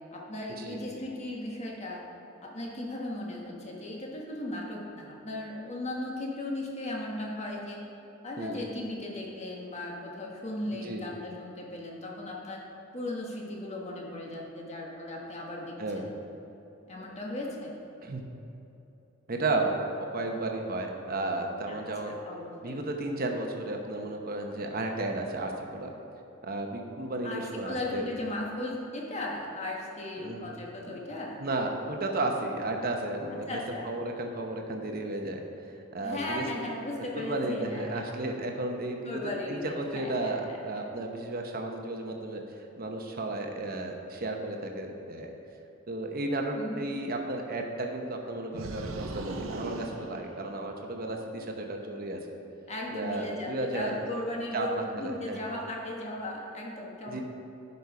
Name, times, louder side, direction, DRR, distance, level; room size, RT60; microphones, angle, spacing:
voice 1, 0.1-2.0 2.4-7.8 8.2-12.6 12.9-16.1 16.9-17.7 21.7-21.8 22.2-22.8 27.2-31.4 33.5-33.9 36.0-38.1 39.0-40.8 46.5-46.9 52.7-57.2, left 1 dB, 35° left, -2 dB, 1.4 m, -37 dB
voice 2, 19.3-22.2 22.6-25.9 26.4-28.1 30.2-30.5 30.9-31.0 31.4-36.4 37.1-39.2 39.5-42.4 42.8-45.3 45.9-52.2 52.9-54.0 54.5-54.7 55.0-55.4 57.0-57.2, right 2 dB, 45° right, 2 dB, 1.0 m, -33 dB
sound 1, 48.5-51.0, right 2 dB, 85° right, 0.7 m, -39 dB
11.0 x 5.5 x 4.8 m, 3.0 s
head